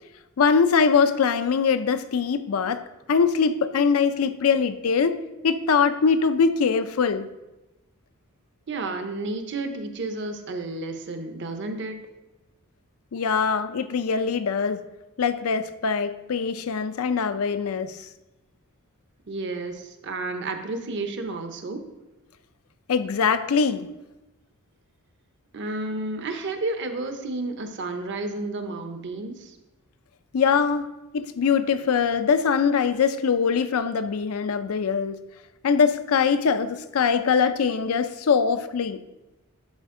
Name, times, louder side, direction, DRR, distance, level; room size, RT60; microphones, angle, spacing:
voice 1, 0.4-2.8 3.1-5.2 5.4-7.3 13.1-14.8 15.2-18.1 22.9-23.9 30.3-30.9 31.1-35.2 35.6-39.0, left 6 dB, 70° left, 11 dB, 0.4 m, -22 dB
voice 2, 8.7-12.0 19.3-21.8 25.5-29.6, right 2 dB, 55° right, 7 dB, 0.7 m, -31 dB
11.5 x 4.3 x 3.7 m, 1.0 s
head